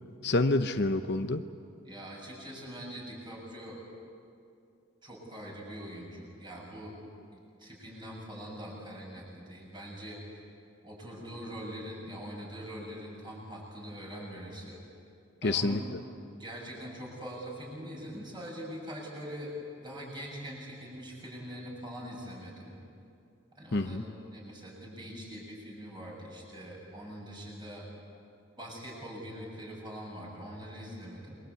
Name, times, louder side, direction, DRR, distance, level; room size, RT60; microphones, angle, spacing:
voice 1, 0.2-1.4 15.4-16.0 23.7-24.0, left 2 dB, 50° left, 8 dB, 0.8 m, -28 dB
voice 2, 1.9-3.8 5.0-7.0 7.3-10.2 10.8-14.8 15.4-15.9 16.3-19.5 19.8-22.7 23.6-24.0 24.3-27.9 28.6-31.3, equal, 20° right, -2 dB, 7.5 m, -43 dB
28.5 x 23.0 x 8.5 m, 2.5 s
head